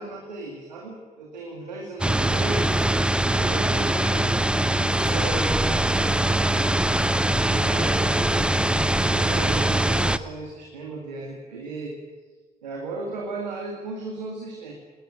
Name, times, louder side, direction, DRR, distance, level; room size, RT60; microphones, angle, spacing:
voice 1, 0.0-2.7 3.3-4.3 4.7-6.8 7.4-12.0 12.6-14.7, right 2 dB, 85° right, 0 dB, 2.2 m, -36 dB
sound 1, 2.0-10.2, right 1 dB, 5° right, 0.9 m, -22 dB
19.5 x 19.0 x 9.0 m, 1.4 s
figure-of-eight pair, 40°, 21 cm